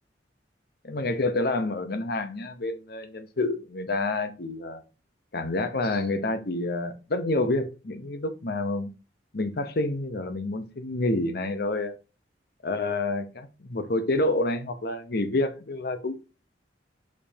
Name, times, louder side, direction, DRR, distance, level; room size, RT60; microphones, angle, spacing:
voice 1, 0.8-4.8 5.3-8.9 9.3-11.9 12.6-16.1, left 2 dB, 55° left, 0.8 m, -28 dB
6.8 x 5.3 x 2.8 m
head